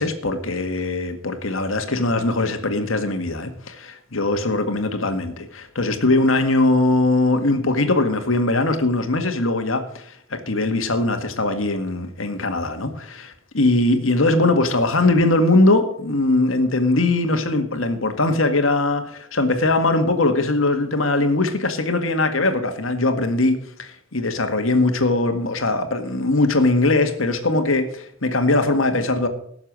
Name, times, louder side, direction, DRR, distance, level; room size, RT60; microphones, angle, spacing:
voice 1, 0.0-29.3, left 2 dB, 85° left, 7 dB, 1.9 m, -21 dB
17.0 x 7.1 x 6.3 m, 0.66 s
head